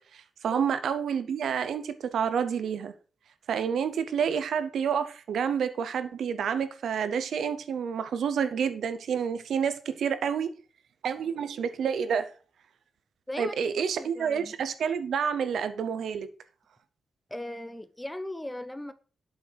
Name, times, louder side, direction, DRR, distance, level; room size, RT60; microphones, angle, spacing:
voice 1, 0.1-2.9 3.5-10.5 11.0-12.3 13.4-16.3, right 7 dB, 75° right, 0.6 m, -29 dB
voice 2, 14.0-14.5 17.3-18.9, left 1 dB, 5° left, 0.4 m, -37 dB
8.0 x 5.4 x 3.3 m
wide cardioid pair, 120°, 0 cm